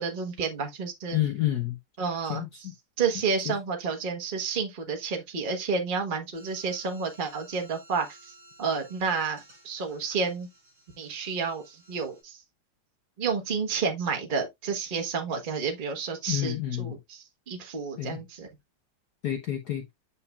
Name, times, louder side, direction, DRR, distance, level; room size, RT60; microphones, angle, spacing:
voice 1, 0.0-1.2 2.0-2.7 3.0-10.5 11.0-12.4 13.2-18.5, right 5 dB, 30° right, 1.1 m, -30 dB
voice 2, 1.1-1.8 2.3-2.5 3.5-3.6 16.3-17.0 18.0-18.2 19.2-19.9, left 13 dB, 60° left, 1.2 m, -29 dB
sound 1, 6.3-12.2, right 1 dB, 55° right, 5.2 m, -56 dB
8.3 x 5.6 x 2.3 m
omnidirectional pair, 2.3 m